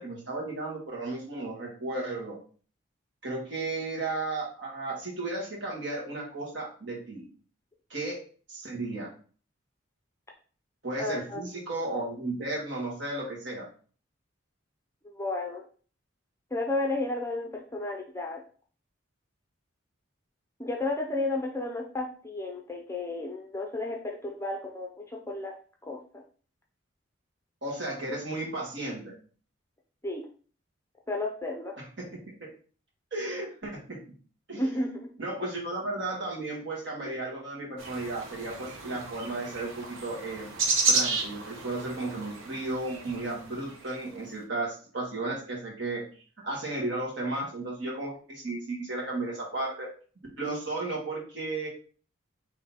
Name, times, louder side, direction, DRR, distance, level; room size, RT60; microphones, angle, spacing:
voice 1, 0.0-2.4 3.2-7.3 7.9-8.2 8.5-9.1 10.8-13.7 27.6-29.1 31.8-32.1 32.4-32.5 33.1-34.0 34.5-34.9 35.2-40.5 40.9-46.0 46.4-49.9 50.4-51.7, right 2 dB, 60° right, -3 dB, 1.8 m, -34 dB
voice 2, 11.0-11.4 15.0-15.6 16.5-18.4 20.6-25.6 25.8-26.2 30.0-30.3 31.1-31.8 34.6-35.1 35.4-35.5, left 2 dB, 15° left, 0 dB, 0.6 m, -32 dB
sound 1, 37.8-44.0, right 4 dB, 80° right, 1.0 m, -32 dB
3.8 x 3.2 x 4.1 m, 0.41 s
head